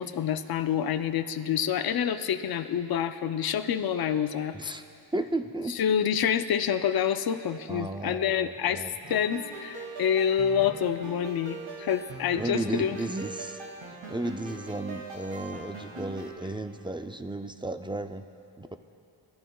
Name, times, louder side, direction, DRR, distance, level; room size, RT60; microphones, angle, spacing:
voice 1, 0.0-4.7 5.7-13.0, left 8 dB, 55° left, 10 dB, 0.5 m, -27 dB
voice 2, 5.1-6.0 7.7-8.9 12.4-13.6 13.9-18.2 18.6-18.8, right 2 dB, 10° right, 8 dB, 0.3 m, -34 dB
sound 1, 9.0-16.3, right 2 dB, 90° right, 2.3 m, -42 dB
21.0 x 12.0 x 2.3 m, 2.8 s
wide cardioid pair, 115°, 44 cm